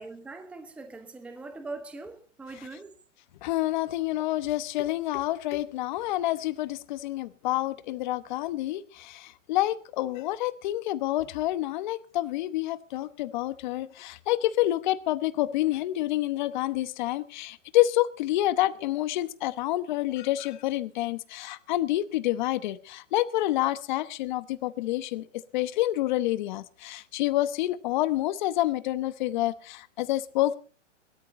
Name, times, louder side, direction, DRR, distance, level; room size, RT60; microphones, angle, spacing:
voice 1, 0.0-3.0, right 3 dB, 5° right, 0.9 m, -41 dB
voice 2, 3.4-25.2 25.5-30.6, left 15 dB, 40° left, 1.0 m, -28 dB
17.5 x 13.0 x 4.1 m
hypercardioid pair, 150°, 37 cm